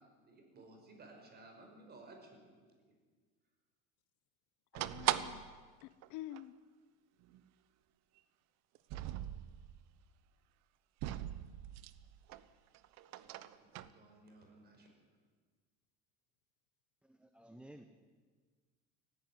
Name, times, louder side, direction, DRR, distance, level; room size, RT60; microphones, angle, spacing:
voice 1, 0.3-2.6 13.2-14.9, right 2 dB, 30° right, 3 dB, 5.4 m, -58 dB
voice 2, 4.7-5.4 5.8-6.5, left 14 dB, 70° left, 16 dB, 0.9 m, -48 dB
sound 1, 4.7-5.6 6.0-6.1 6.3-6.4 7.2-7.4 8.7-9.8 11.0-12.4 12.7-13.9, right 14 dB, 60° right, 1.0 m, -39 dB
voice 3, 17.0-17.9, right 1 dB, 5° right, 7 dB, 0.8 m, -55 dB
18.5 x 15.0 x 9.7 m, 1.5 s
cardioid pair, 145°, 31 cm